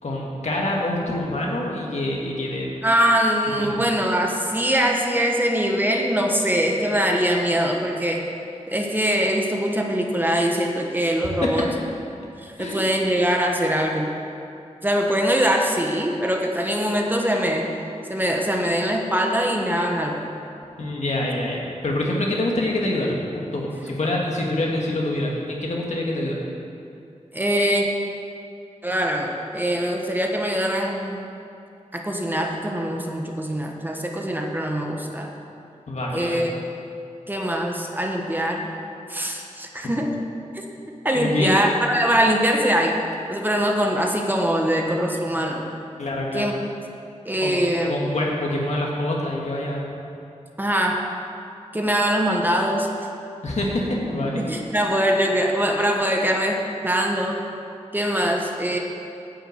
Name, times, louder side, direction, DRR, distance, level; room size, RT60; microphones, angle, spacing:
voice 1, 0.0-2.8 3.6-3.7 11.4-11.7 12.6-12.8 20.8-23.1 23.5-26.4 35.9-36.5 41.1-41.5 46.0-46.5 47.4-47.6 47.8-50.0 53.4-54.4 56.0-56.2, left 1 dB, 65° left, -2 dB, 2.0 m, -26 dB
voice 2, 2.8-8.2 8.7-11.7 12.4-14.1 14.8-17.7 18.1-20.2 27.3-27.9 28.8-31.2 31.9-35.3 36.1-36.5 37.3-38.7 39.1-40.1 40.5-40.6 41.0-43.0 43.3-45.6 46.3-46.5 47.2-47.9 50.6-51.0 51.7-52.9 54.4-56.6 56.8-57.5 57.9-58.8, equal, 15° right, 1 dB, 1.2 m, -22 dB
9.8 x 6.7 x 8.0 m, 2.6 s
wide cardioid pair, 80°, 12 cm